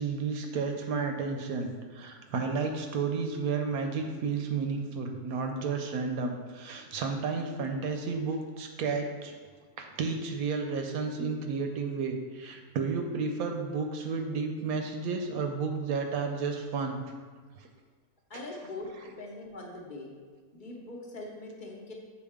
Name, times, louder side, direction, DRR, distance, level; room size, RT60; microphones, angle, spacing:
voice 1, 0.0-9.3 9.8-17.0 17.6-17.7 18.3-18.4, right 4 dB, 70° right, 4 dB, 1.0 m, -32 dB
voice 2, 18.3-20.1 20.5-21.9, left 2 dB, 40° left, 0 dB, 0.8 m, -42 dB
7.0 x 4.5 x 3.5 m, 1.5 s
omnidirectional pair, 1.6 m